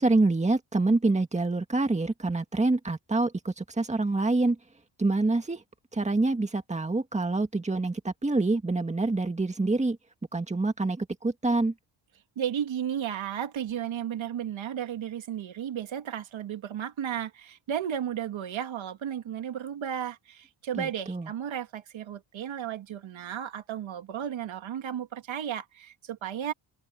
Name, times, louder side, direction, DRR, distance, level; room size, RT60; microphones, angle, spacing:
voice 1, 0.0-4.6 5.0-5.6 5.9-10.0 10.3-11.7 20.8-21.3, right 2 dB, 15° right, 2.0 m, -26 dB
voice 2, 12.4-26.5, right 9 dB, 75° right, 2.4 m, -34 dB
cardioid pair, 125°, 47 cm